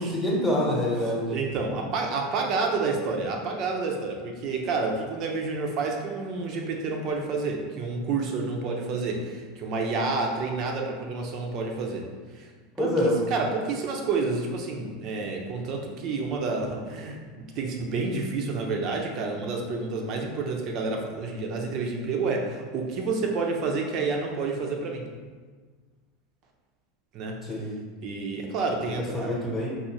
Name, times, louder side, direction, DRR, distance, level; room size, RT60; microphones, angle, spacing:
voice 1, 0.0-1.3 12.8-13.2 27.4-27.7 28.8-29.7, left 1 dB, ahead, -7 dB, 1.1 m, -26 dB
voice 2, 1.3-12.1 12.3-12.5 12.8-25.1 27.1-27.4 28.0-29.3, right 3 dB, 45° right, 2 dB, 0.7 m, -29 dB
5.3 x 2.6 x 3.1 m, 1.5 s
figure-of-eight pair, 80°, 0 cm